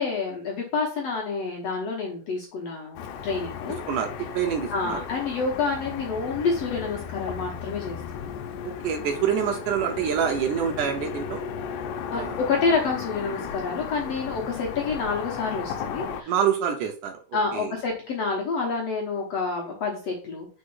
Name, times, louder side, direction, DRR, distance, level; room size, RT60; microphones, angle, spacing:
voice 1, 0.0-3.8 4.7-8.3 12.1-16.3 17.3-20.5, left 4 dB, 65° left, -1 dB, 1.7 m, -28 dB
Car passing by / Traffic noise roadway noise, 3.0-16.2, left 7 dB, 80° left, 2.3 m, -35 dB
voice 2, 4.3-5.0 8.6-11.4 12.1-12.4 16.3-17.1 17.5-17.7, right 8 dB, 75° right, 5 dB, 2.1 m, -26 dB
5.0 x 4.3 x 5.6 m, 0.39 s
omnidirectional pair, 4.1 m